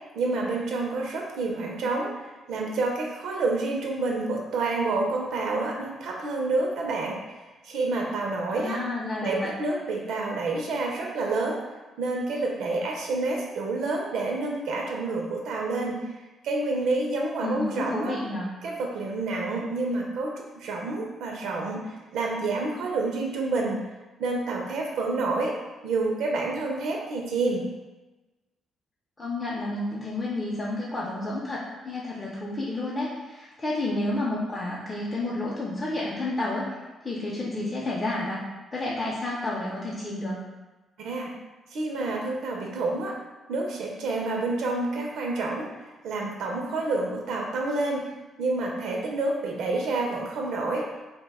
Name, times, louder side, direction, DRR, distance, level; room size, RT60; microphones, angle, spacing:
voice 1, 0.1-7.4 7.6-8.8 9.2-11.7 12.0-16.0 16.4-18.2 18.6-23.8 24.2-27.6 41.0-41.3 41.7-43.1 43.5-45.7 46.0-48.1 48.4-50.9, right 3 dB, 80° right, 0 dB, 0.4 m, -28 dB
voice 2, 8.5-9.5 17.4-18.5 29.2-36.7 37.0-38.4 38.7-40.4, left 2 dB, 25° left, -6 dB, 0.5 m, -30 dB
2.4 x 2.1 x 3.4 m, 1.2 s
cardioid pair, 90°, 0 cm